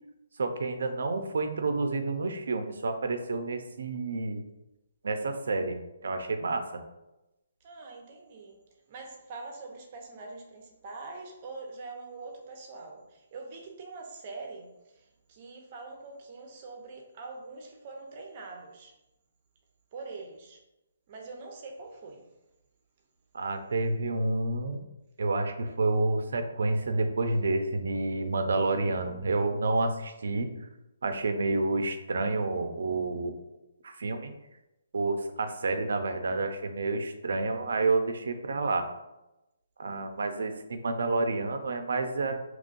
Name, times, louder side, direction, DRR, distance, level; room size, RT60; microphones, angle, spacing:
voice 1, 0.4-4.4 5.0-5.8 6.0-6.8 23.3-24.8 25.2-30.7 31.0-33.4 33.8-34.3 34.9-38.9 39.8-42.4, right 3 dB, 75° right, 7 dB, 0.6 m, -29 dB
voice 2, 7.6-8.6 8.9-18.9 19.9-20.6 21.1-22.3, right 3 dB, 35° right, 2 dB, 0.8 m, -44 dB
5.3 x 3.1 x 2.6 m, 0.96 s
hypercardioid pair, 160°, 0 cm